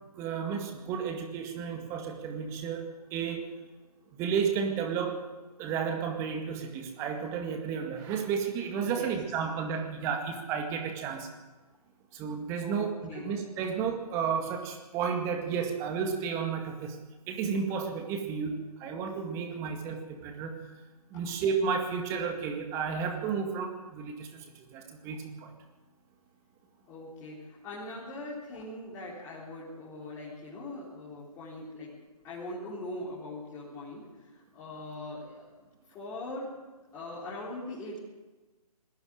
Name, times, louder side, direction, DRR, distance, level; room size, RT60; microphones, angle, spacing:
voice 1, 0.2-3.5 4.1-5.2 5.6-11.3 12.1-17.0 17.3-20.6 21.1-25.5, right 6 dB, 15° right, 4 dB, 1.9 m, -32 dB
voice 2, 12.6-13.3 20.3-20.4 26.9-31.9 32.2-35.5 35.9-36.5 36.9-38.0, left 2 dB, 15° left, -8 dB, 4.1 m, -41 dB
20.5 x 16.0 x 8.9 m, 1.2 s
figure-of-eight pair, 140°, 20 cm